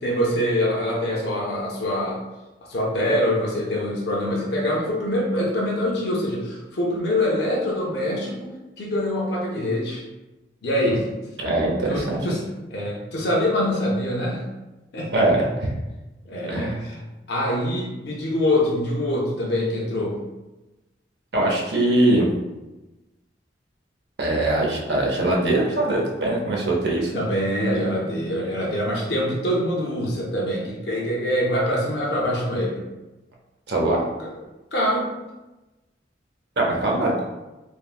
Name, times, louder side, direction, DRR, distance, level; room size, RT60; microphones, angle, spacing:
voice 1, 0.0-2.2 2.7-8.5 8.8-10.0 10.6-11.1 11.9-12.4 12.7-14.4 14.9-15.3 16.3-17.0 17.3-20.2 27.1-32.8 34.2-34.3 34.7-35.1 36.9-37.0, left 1 dB, 60° left, -3 dB, 0.5 m, -24 dB
voice 2, 11.4-12.3 15.1-15.5 16.5-16.8 21.3-22.3 24.2-27.1 33.7-34.0 36.6-37.2, right 1 dB, 65° right, -1 dB, 0.6 m, -22 dB
3.3 x 2.0 x 2.3 m, 1.1 s
head